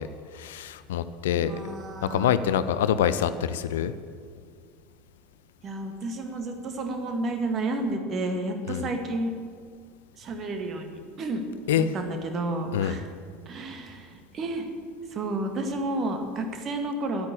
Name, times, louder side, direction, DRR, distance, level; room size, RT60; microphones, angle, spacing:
voice 1, 0.0-1.7 2.0-3.9 8.7-8.8 11.7-11.9 12.7-13.0, left 9 dB, 65° left, 13 dB, 0.5 m, -26 dB
voice 2, 1.3-2.3 5.6-9.3 10.1-11.4 11.8-13.0 13.5-14.7 15.1-17.3, right 2 dB, 35° right, 5 dB, 1.9 m, -31 dB
10.5 x 9.6 x 8.6 m, 2.1 s
figure-of-eight pair, 75°, 0 cm